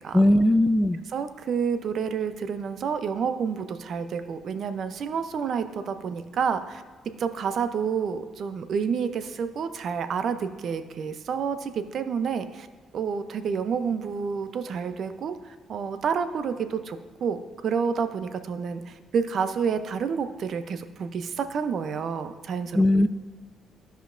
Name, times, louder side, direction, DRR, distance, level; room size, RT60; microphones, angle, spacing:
voice 1, 0.1-1.0 22.7-23.1, left 1 dB, 5° left, 11 dB, 0.3 m, -19 dB
voice 2, 1.1-6.8 7.2-12.7 12.9-22.8, right 6 dB, 60° right, 10 dB, 0.6 m, -29 dB
15.0 x 5.2 x 2.5 m, 1.5 s
cardioid pair, 90°, 0 cm